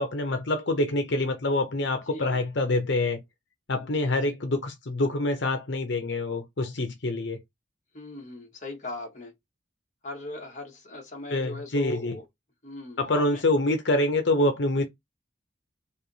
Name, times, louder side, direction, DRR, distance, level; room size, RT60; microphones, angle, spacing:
voice 1, 0.0-3.2 3.7-7.4 11.3-12.2 13.0-14.9, left 2 dB, 75° left, 0.8 m, -26 dB
voice 2, 3.8-4.1 7.9-9.3 10.0-12.2 12.6-13.0 13.3-13.4, left 2 dB, 40° left, 1.2 m, -39 dB
3.3 x 2.6 x 4.0 m
head